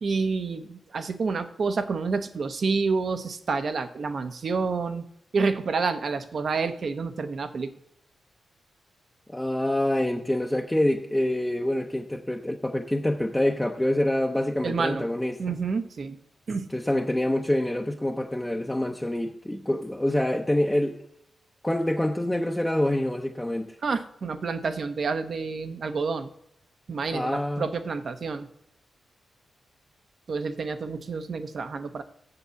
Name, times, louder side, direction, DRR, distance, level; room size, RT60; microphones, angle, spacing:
voice 1, 0.0-5.0 5.3-7.7 14.6-15.1 15.4-16.2 16.5-16.7 23.8-26.3 26.9-28.5 30.3-32.0, right 4 dB, 55° right, 9 dB, 0.9 m, -28 dB
voice 2, 9.3-15.4 16.7-21.0 21.6-23.8 27.1-27.7, left 1 dB, 10° left, 2 dB, 0.7 m, -26 dB
7.4 x 6.8 x 6.9 m, 0.74 s
cardioid pair, 105°, 0 cm